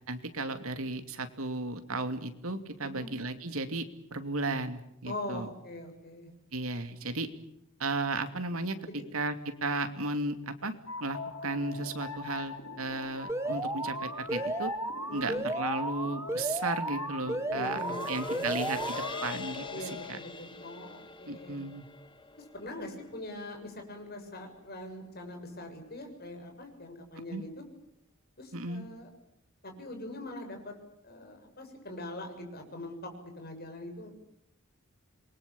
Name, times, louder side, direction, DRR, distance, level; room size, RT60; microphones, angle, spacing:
voice 1, 0.1-5.5 6.5-7.3 7.8-10.7 11.0-14.7 15.1-20.2 21.3-21.9 27.3-27.4 28.5-28.8, right 2 dB, 70° right, 8 dB, 2.7 m, -35 dB
voice 2, 5.1-6.3 8.9-9.0 15.1-15.4 17.5-18.5 19.7-21.6 22.4-27.6 28.4-29.1 29.6-30.7 31.0-34.3, left 1 dB, 45° left, 4 dB, 7.0 m, -42 dB
sound 1, 10.9-20.1, left 5 dB, 75° left, 2.5 m, -42 dB
Alarm, 13.3-19.3, right 2 dB, 10° right, 1.6 m, -34 dB
sound 2, 17.4-24.0 24.4-24.5, left 2 dB, 20° left, 1.8 m, -43 dB
28.0 x 22.5 x 7.2 m, 0.79 s
head